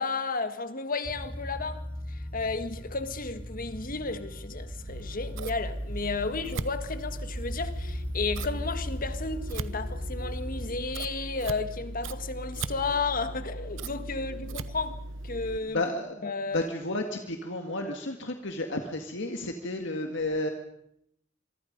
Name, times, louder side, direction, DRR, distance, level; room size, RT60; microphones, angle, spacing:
voice 1, 0.0-15.8 16.2-16.7, left 4 dB, 45° left, 1.6 m, -33 dB
sound 1, 1.0-10.7, equal, 10° left, 1.8 m, -38 dB
Scissors, 4.9-15.6, right 2 dB, 70° right, 1.0 m, -38 dB
voice 2, 15.6-20.5, left 2 dB, 65° left, 2.0 m, -32 dB
26.5 x 23.5 x 5.3 m
head